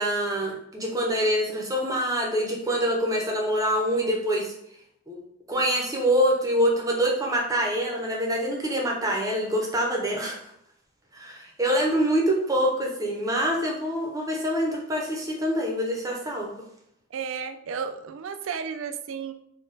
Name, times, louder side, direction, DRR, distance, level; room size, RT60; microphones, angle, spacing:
voice 1, 0.0-4.5 5.1-10.5 11.1-16.5, equal, 15° right, -1 dB, 0.6 m, -25 dB
voice 2, 17.1-19.3, right 6 dB, 65° right, 9 dB, 0.3 m, -33 dB
4.0 x 2.2 x 3.8 m, 0.73 s
head